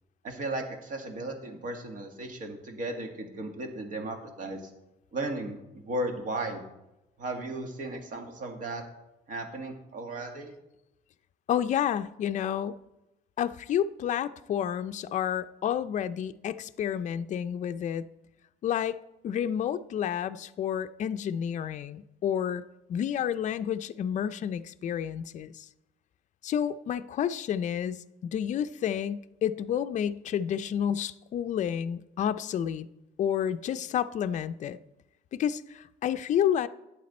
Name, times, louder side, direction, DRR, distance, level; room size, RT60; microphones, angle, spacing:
voice 1, 0.2-4.7 5.1-6.6 7.2-8.8 9.3-10.5, right 2 dB, 50° right, 2.0 m, -35 dB
voice 2, 11.5-12.8 13.4-18.1 18.6-22.6 22.9-25.7 26.4-28.0 28.3-32.9 33.2-34.8 35.3-36.7, left 9 dB, 45° left, 0.5 m, -30 dB
11.5 x 8.6 x 4.3 m
cardioid pair, 110°, 17 cm